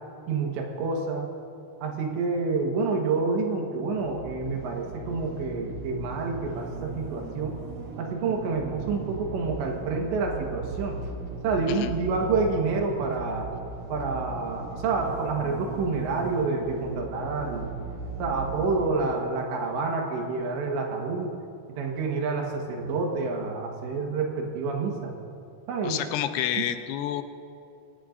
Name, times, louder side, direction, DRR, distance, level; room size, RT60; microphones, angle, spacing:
voice 1, 0.3-1.3 1.8-7.6 8.0-11.0 11.4-13.5 13.9-17.7 18.2-21.4 21.7-25.2 25.7-26.0 26.6-26.7, right 4 dB, 75° right, 1 dB, 3.6 m, -28 dB
sound 1, 3.9-18.9, right 3 dB, 60° right, 2.1 m, -38 dB
voice 2, 25.8-27.2, left 11 dB, 80° left, 9 dB, 2.8 m, -29 dB
23.5 x 17.0 x 2.6 m, 2.5 s
omnidirectional pair, 5.2 m